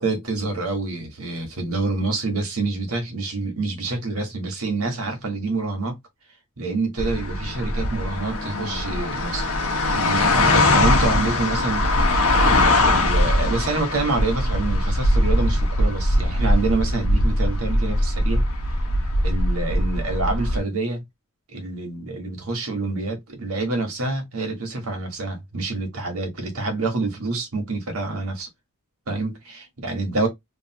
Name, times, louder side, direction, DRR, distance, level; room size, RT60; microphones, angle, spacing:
voice 1, 0.0-6.0 6.6-9.5 9.9-11.9 12.4-18.5 19.2-21.0 21.5-28.5 29.1-30.3, right 3 dB, 75° right, 1.4 m, -27 dB
sound 1, 7.0-20.6, left 1 dB, 75° left, 1.1 m, -21 dB
3.2 x 2.6 x 2.9 m
head